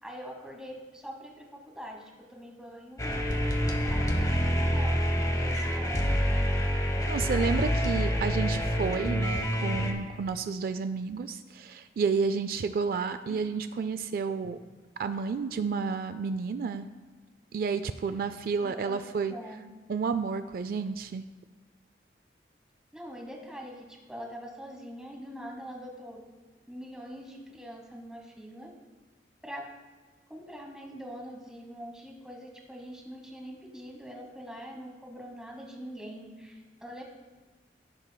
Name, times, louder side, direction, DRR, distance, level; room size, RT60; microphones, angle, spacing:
voice 1, 0.0-6.2 13.3-13.5 18.6-19.0 19.3-19.7 22.9-26.2 26.7-28.7 29.4-29.6 30.3-37.0, equal, 5° right, 1 dB, 1.1 m, -44 dB
sound 1, 3.0-9.9, equal, 20° left, 0.9 m, -27 dB
voice 2, 7.1-14.6 15.0-16.9 17.5-19.3 19.9-21.2, right 5 dB, 55° right, 11 dB, 0.3 m, -31 dB
15.5 x 7.3 x 2.2 m, 1.3 s
head